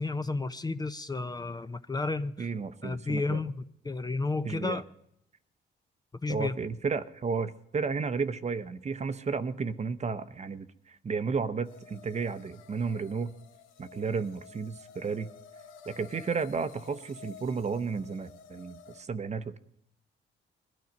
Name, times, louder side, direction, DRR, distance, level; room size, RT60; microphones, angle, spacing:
voice 1, 0.0-2.5 2.8-4.8 6.2-6.6, left 3 dB, 20° left, 11 dB, 0.6 m, -32 dB
voice 2, 2.4-3.4 4.4-4.8 6.3-13.3 13.8-15.3 15.9-19.6, right 5 dB, 35° right, 12 dB, 0.8 m, -33 dB
sound 1, 11.6-19.0, left 6 dB, 85° left, 1.0 m, -52 dB
20.5 x 12.5 x 5.2 m, 0.75 s
cardioid pair, 90°, 20 cm